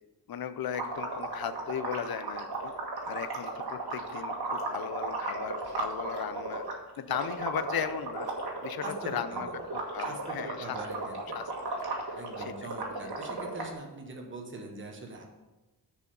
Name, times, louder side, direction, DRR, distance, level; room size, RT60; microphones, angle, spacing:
voice 1, 0.3-2.7 3.0-6.6 7.0-8.3 8.6-10.8 11.3-11.5 12.0-12.5, left 8 dB, 60° left, 12 dB, 0.6 m, -36 dB
sound 1, 0.7-6.7 7.1-13.7, right 3 dB, 65° right, 1.7 m, -35 dB
voice 2, 8.8-9.5 10.0-11.4 12.1-15.2, right 2 dB, 30° right, 1 dB, 1.1 m, -43 dB
6.7 x 4.9 x 6.6 m, 1.1 s
wide cardioid pair, 135°, 41 cm